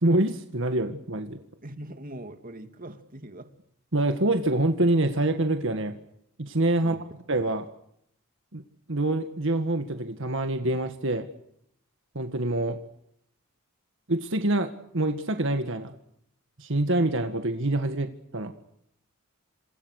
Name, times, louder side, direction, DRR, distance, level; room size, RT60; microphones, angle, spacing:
voice 1, 0.0-1.4 3.9-5.9 6.4-7.0 7.3-7.7 8.5-8.6 8.9-11.3 12.1-12.8 14.1-15.9 16.6-18.5, right 2 dB, 60° right, 7 dB, 1.8 m, -26 dB
voice 2, 1.6-3.5 6.8-7.1, right 1 dB, 40° right, 7 dB, 2.6 m, -42 dB
28.5 x 27.0 x 6.6 m, 0.72 s
head